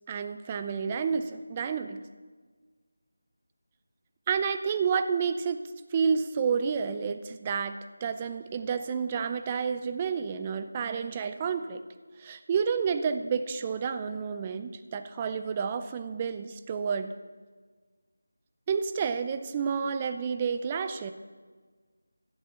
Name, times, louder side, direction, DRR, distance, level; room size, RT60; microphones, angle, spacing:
voice 1, 0.1-2.0 4.3-5.6 5.9-11.8 12.2-17.1 18.7-21.1, right 6 dB, 20° right, 9 dB, 0.5 m, -30 dB
12.0 x 8.2 x 7.0 m, 1.5 s
figure-of-eight pair, 165°, 0 cm